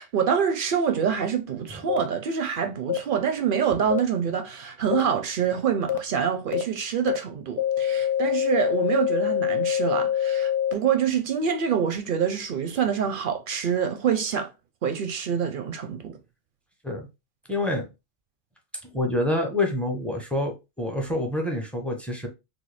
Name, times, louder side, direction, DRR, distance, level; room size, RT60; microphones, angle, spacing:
voice 1, 0.0-14.5 14.8-16.2, right 7 dB, 60° right, 0.6 m, -26 dB
sound 1, 1.9-2.0 2.9-3.0 3.9-4.0 4.9-5.0 5.9-6.0 6.5-6.6 7.1-7.2 7.6-10.7, left 10 dB, 70° left, 0.8 m, -24 dB
voice 2, 17.5-17.8 18.9-22.3, left 1 dB, ahead, 0.4 m, -27 dB
3.2 x 2.2 x 3.2 m
omnidirectional pair, 1.2 m